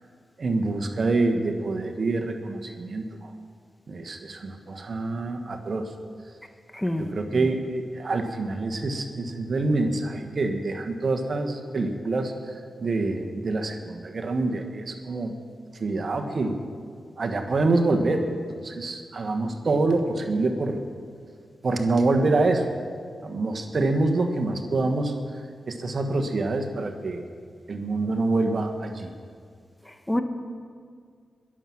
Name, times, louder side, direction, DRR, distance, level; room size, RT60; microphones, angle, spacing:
voice 1, 0.4-3.3 3.9-5.9 7.1-12.3 12.8-15.3 15.8-16.6 17.2-18.2 18.6-20.8 21.6-22.6 23.2-25.2 25.7-27.2 27.7-29.1, right 2 dB, 60° right, 5 dB, 1.5 m, -26 dB
voice 2, 6.7-7.5 30.1-30.2, left 1 dB, 15° left, 7 dB, 1.3 m, -27 dB
22.0 x 7.6 x 6.1 m, 2.1 s
supercardioid pair, 45°, 0 cm